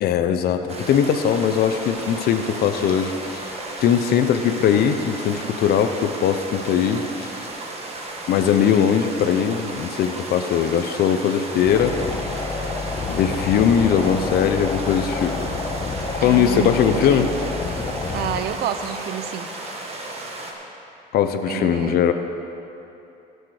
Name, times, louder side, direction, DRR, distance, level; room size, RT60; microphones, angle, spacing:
voice 1, 0.0-3.5 3.8-7.3 8.3-12.0 13.1-15.4 16.2-17.3 21.1-22.1, left 8 dB, 65° left, 8 dB, 0.7 m, -20 dB
sound 1, 0.7-20.5, right 2 dB, 35° right, 1.4 m, -34 dB
sound 2, 11.7-18.4, left 3 dB, 30° left, 1.1 m, -28 dB
voice 2, 16.2-17.3 18.1-19.5 21.5-22.1, right 10 dB, 70° right, 10 dB, 0.7 m, -29 dB
16.0 x 6.5 x 4.9 m, 2.9 s
cardioid pair, 110°, 17 cm